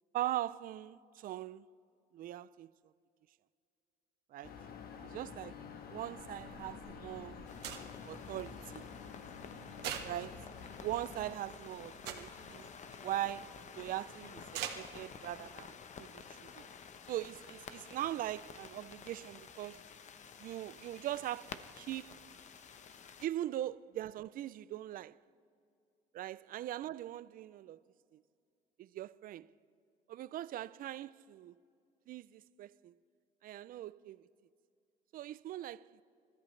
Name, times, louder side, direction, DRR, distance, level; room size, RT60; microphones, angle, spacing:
voice 1, 0.1-1.7 2.1-2.7 4.3-4.6 5.0-5.6 5.9-7.4 8.1-8.9 10.0-10.4 10.8-12.6 13.0-16.7 17.1-19.8 20.4-22.2 23.2-25.2 26.1-27.8 28.1-28.2 28.8-29.5 30.1-31.5 32.1-32.9 33.4-34.3 35.1-36.0, right 13 dB, 55° right, 0.4 m, -41 dB
sound 1, 4.4-11.3, left 6 dB, 65° left, 1.4 m, -49 dB
sound 2, 6.2-15.5, right 9 dB, 85° right, 1.6 m, -48 dB
sound 3, 7.4-23.3, left 6 dB, 45° left, 0.9 m, -52 dB
29.0 x 14.0 x 3.2 m
cardioid pair, 110°, 17 cm